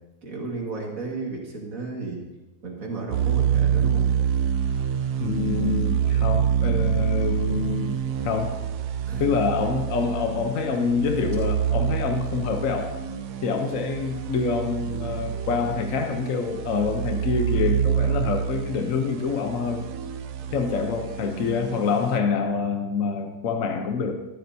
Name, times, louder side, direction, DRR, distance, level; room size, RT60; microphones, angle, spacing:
voice 1, 0.2-2.2 2.6-4.1 9.1-9.2 20.4-20.5, right 3 dB, 40° right, -1 dB, 2.2 m, -33 dB
sound 1, 3.1-22.2, right 9 dB, 80° right, 1.6 m, -27 dB
voice 2, 5.2-8.0 8.2-8.6 9.2-12.9 13.4-19.8 20.5-24.1, left 5 dB, 55° left, 4 dB, 0.9 m, -26 dB
13.0 x 12.5 x 2.8 m, 1.1 s
omnidirectional pair, 2.3 m